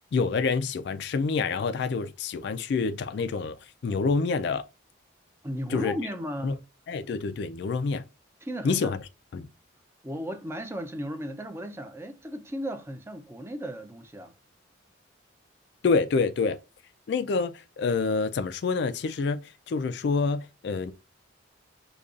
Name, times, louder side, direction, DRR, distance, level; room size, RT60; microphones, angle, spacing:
voice 1, 0.1-3.6 3.8-4.6 5.7-5.9 6.4-6.6 6.9-8.0 8.6-9.0 9.3-9.5 15.8-16.6 17.1-19.4 19.7-20.9, left 4 dB, 60° left, 0.3 m, -27 dB
voice 2, 5.4-6.6 8.4-9.0 10.0-14.3, equal, 15° right, 0.4 m, -35 dB
5.2 x 2.3 x 2.4 m
head